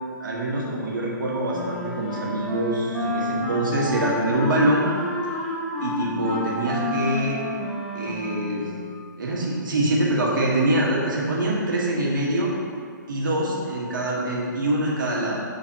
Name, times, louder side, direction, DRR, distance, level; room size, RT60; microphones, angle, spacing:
voice 1, 0.2-4.9 5.8-7.4 7.9-8.7 9.2-12.5 13.1-15.4, right 1 dB, 70° right, -4 dB, 1.5 m, -24 dB
Wind instrument woodwind instrument, 1.5-9.0, left 1 dB, 5° left, 0.8 m, -30 dB
9.6 x 4.0 x 2.9 m, 2.1 s
hypercardioid pair, 145°, 11 cm